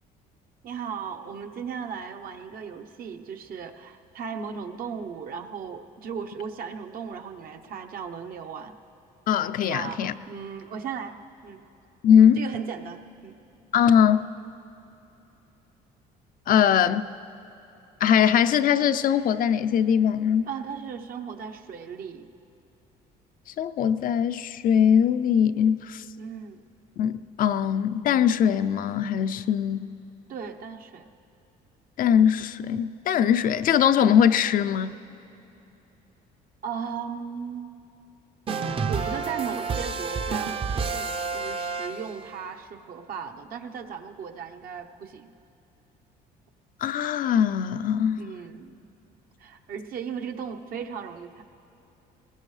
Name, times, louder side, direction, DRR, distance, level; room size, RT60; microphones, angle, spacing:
voice 1, 0.6-8.8 9.7-11.7 12.4-13.4 20.5-22.3 26.2-26.6 30.3-31.1 36.6-37.8 38.6-45.3 48.2-48.8 49.4-51.4, right 6 dB, 60° right, 0.9 m, -36 dB
voice 2, 9.3-10.1 12.0-12.5 13.7-14.3 16.5-17.1 18.0-20.5 23.6-26.0 27.0-29.9 32.0-35.0 46.8-48.2, left 8 dB, 55° left, 0.5 m, -21 dB
sound 1, 38.5-42.3, right 5 dB, 35° right, 0.6 m, -29 dB
20.5 x 19.5 x 3.2 m
cardioid pair, 110°, 17 cm